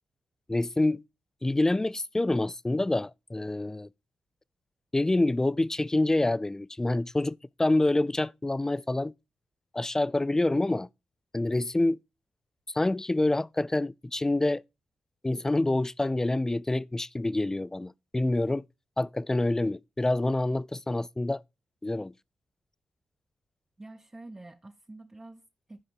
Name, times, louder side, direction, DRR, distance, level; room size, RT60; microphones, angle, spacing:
voice 1, 0.5-1.0 1.4-3.9 4.9-9.1 9.7-10.9 11.3-12.0 12.7-14.6 15.2-18.7 19.0-21.4 21.8-22.1, left 2 dB, 20° left, 0.4 m, -27 dB
voice 2, 23.8-25.8, right 2 dB, 25° right, 0.9 m, -47 dB
12.0 x 4.9 x 4.6 m
supercardioid pair, 50°, 3 cm